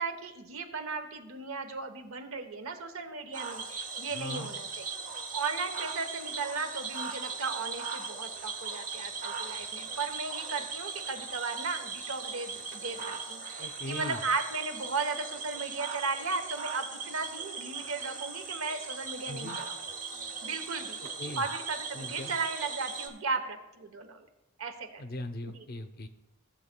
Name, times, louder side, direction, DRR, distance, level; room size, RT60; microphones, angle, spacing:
voice 1, 0.0-4.9 5.3-19.7 20.4-21.0 21.4-24.3 24.6-25.0 25.5-25.6, right 4 dB, 75° right, 7 dB, 0.9 m, -36 dB
Cricket / Frog, 3.3-23.1, right 5 dB, 40° right, 1.0 m, -39 dB
voice 2, 4.1-4.5 13.6-14.2 19.2-19.6 21.2-21.4 21.9-22.4 25.0-26.1, left 1 dB, 45° left, 9 dB, 0.6 m, -39 dB
15.0 x 7.3 x 2.2 m, 0.96 s
head